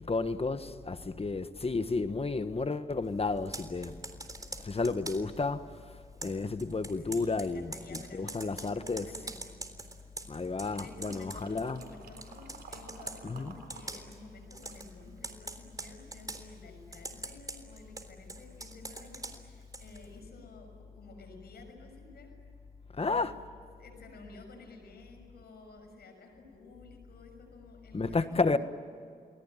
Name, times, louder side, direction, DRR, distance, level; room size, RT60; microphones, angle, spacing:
voice 1, 0.0-4.0 4.6-5.6 6.2-9.1 10.3-11.8 13.2-13.5 23.0-23.3 27.9-28.6, left 3 dB, 40° left, 1.4 m, -32 dB
Computer keyboard, 3.4-5.4 6.2-11.9 12.2-13.2 13.7-14.2 14.5-14.9 15.2-16.4 16.9-20.1, right 2 dB, 20° right, 3.6 m, -43 dB
voice 2, 7.0-9.5 10.8-22.3 23.0-23.3 23.8-28.6, left 3 dB, 85° left, 6.5 m, -52 dB
sound 1, 10.6-13.9 14.2-15.6 16.1-16.2, right 5 dB, 85° right, 4.1 m, -52 dB
30.0 x 20.5 x 9.2 m
cardioid pair, 60°, 16 cm